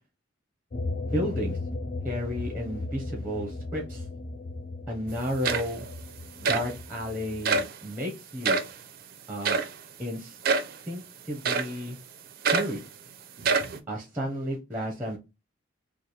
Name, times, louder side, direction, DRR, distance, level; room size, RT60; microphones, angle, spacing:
sound 1, 0.7-7.6, left 2 dB, 40° left, 0.4 m, -36 dB
voice 1, 1.1-1.6 2.0-4.0 4.9-5.8 6.4-8.6 9.3-9.6 10.0-10.4 10.9-11.0 11.3-12.0 12.5-12.8 13.9-15.2, equal, 10° right, 0 dB, 0.7 m, -32 dB
sound 2, 5.1-5.2 5.4-5.9 6.4-6.7 7.4-7.7 8.4-8.7 9.4-9.7 10.4-10.8 11.4-11.8 12.4-12.8 13.4-13.8, right 4 dB, 45° right, 0.4 m, -26 dB
3.2 x 2.4 x 4.1 m, 0.26 s
head